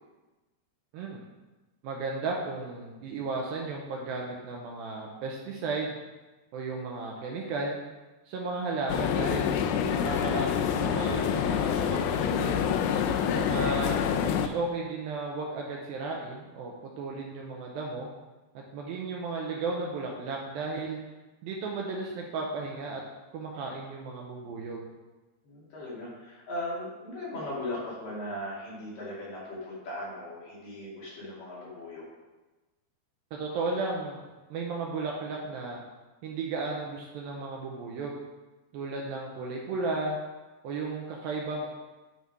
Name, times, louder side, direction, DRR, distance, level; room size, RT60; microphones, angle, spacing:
voice 1, 1.8-6.0 6.5-7.8 8.3-9.5 10.0-12.7 13.3-14.0 14.4-18.1 18.7-21.0 21.4-23.0 23.3-24.9 33.3-34.2 34.5-35.8 36.2-38.2 38.7-40.2 40.6-41.7, right 3 dB, 80° right, -1 dB, 2.3 m, -34 dB
sound 1, 8.9-14.5, left 8 dB, 85° left, 2.3 m, -27 dB
voice 2, 25.5-32.1, left 1 dB, 60° left, -8 dB, 4.0 m, -38 dB
9.4 x 4.1 x 4.8 m, 1.2 s
omnidirectional pair, 4.7 m